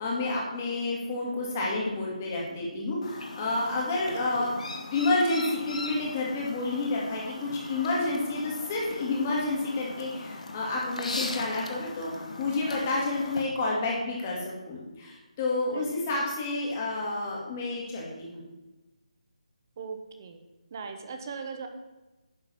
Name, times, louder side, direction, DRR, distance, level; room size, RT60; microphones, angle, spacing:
voice 1, 0.0-4.5 4.9-18.4, left 2 dB, 20° left, -3 dB, 2.1 m, -30 dB
Chirp tweet, 3.0-13.4, left 2 dB, 65° left, 1.5 m, -39 dB
voice 2, 4.1-4.6 15.7-15.9 19.8-20.4 20.7-21.7, right 5 dB, 25° right, 6 dB, 0.8 m, -39 dB
10.5 x 3.9 x 7.6 m, 1.1 s
hypercardioid pair, 175°, 4 cm